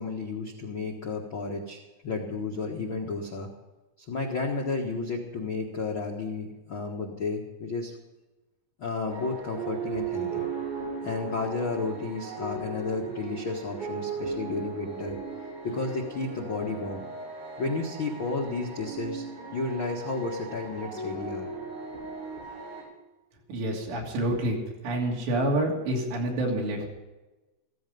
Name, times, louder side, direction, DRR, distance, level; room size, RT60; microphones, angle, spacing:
voice 1, 0.0-3.5 4.1-7.9 8.8-10.4 11.0-15.2 15.6-17.0 17.6-19.2 19.5-21.5, left 3 dB, 80° left, 0 dB, 1.1 m, -32 dB
sound 1, 9.1-22.8, right 4 dB, 45° right, 7.2 m, -37 dB
voice 2, 23.5-24.6 24.8-26.9, right 1 dB, 85° right, -1 dB, 5.1 m, -27 dB
15.5 x 15.5 x 5.4 m, 1.1 s
omnidirectional pair, 4.9 m